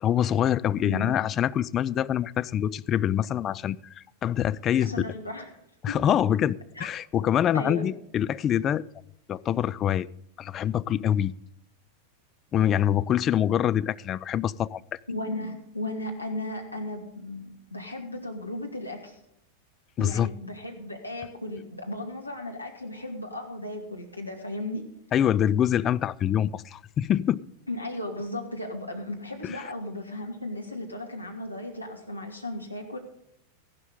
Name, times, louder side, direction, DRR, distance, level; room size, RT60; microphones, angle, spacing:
voice 1, 0.0-5.1 5.8-8.8 9.3-10.1 10.4-11.3 12.5-15.0 20.0-20.3 25.1-27.4 29.4-29.6, left 10 dB, 30° left, 16 dB, 0.4 m, -25 dB
voice 2, 0.8-1.2 4.8-5.5 5.9-6.0 6.8-6.9 7.5-7.9 15.1-19.2 20.0-24.8 27.7-33.0, left 1 dB, 85° left, 1 dB, 2.3 m, -35 dB
14.5 x 12.0 x 3.7 m, 0.77 s
figure-of-eight pair, 90°, 0 cm